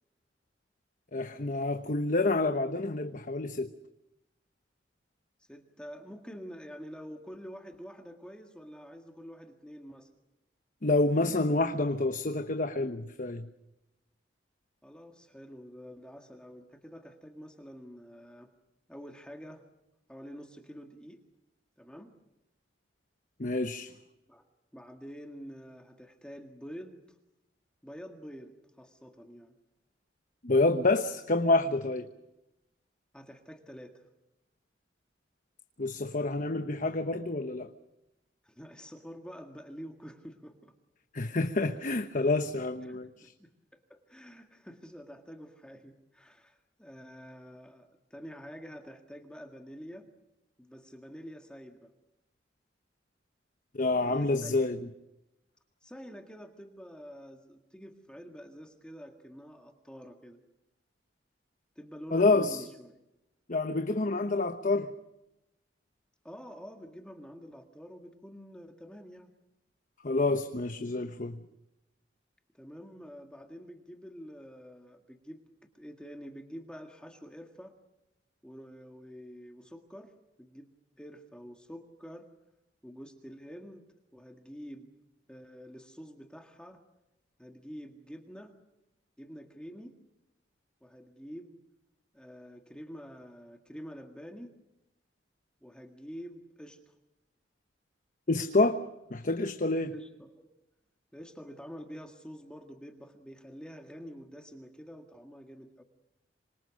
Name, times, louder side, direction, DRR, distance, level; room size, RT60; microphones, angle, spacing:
voice 1, 1.1-3.7 10.8-13.5 23.4-23.9 30.4-32.1 35.8-37.7 41.1-43.3 53.7-54.9 62.1-62.6 63.5-64.9 70.0-71.4 98.3-98.8 99.1-99.9, left 2 dB, 45° left, 1.1 m, -28 dB
voice 2, 5.4-10.1 14.8-18.5 18.9-19.6 20.1-21.2 21.8-22.1 24.3-27.1 27.8-29.6 33.1-34.0 38.4-40.7 42.8-50.1 50.6-51.9 53.9-54.8 55.8-60.4 61.8-63.0 66.2-69.3 72.5-77.7 78.4-80.1 80.4-80.7 81.0-82.3 82.8-83.9 84.1-84.9 85.3-86.8 87.4-88.5 89.2-89.9 90.8-91.5 92.1-94.5 95.6-97.0 99.9-100.5 101.1-105.8, equal, 5° left, 1.8 m, -47 dB
26.5 x 26.0 x 6.4 m
head